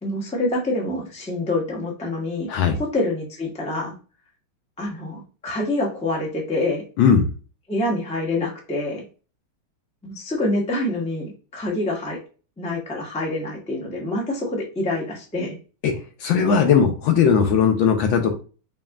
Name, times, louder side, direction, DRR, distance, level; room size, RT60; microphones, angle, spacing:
voice 1, 0.0-2.5 2.8-3.9 4.8-6.8 7.7-9.0 10.0-12.2 12.6-15.5, left 2 dB, 5° left, -2 dB, 0.5 m, -26 dB
voice 2, 7.0-7.3 15.8-15.9 16.2-18.3, left 6 dB, 70° left, 4 dB, 1.2 m, -18 dB
5.3 x 2.7 x 2.3 m, 0.35 s
omnidirectional pair, 2.4 m